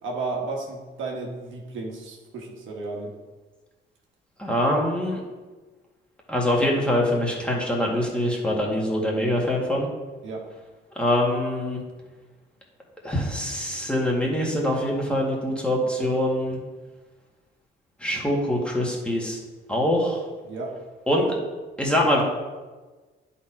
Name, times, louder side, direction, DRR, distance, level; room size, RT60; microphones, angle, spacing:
voice 1, 0.0-3.1 10.2-10.5 16.0-16.2 20.4-20.7, right 3 dB, 80° right, 0 dB, 1.7 m, -33 dB
voice 2, 4.4-5.2 6.3-9.9 11.0-11.8 13.0-16.6 18.0-19.4 19.7-20.2 21.1-21.3 21.8-22.2, left 1 dB, 5° left, -3 dB, 2.1 m, -24 dB
10.0 x 4.3 x 4.6 m, 1.3 s
cardioid pair, 90°, 20 cm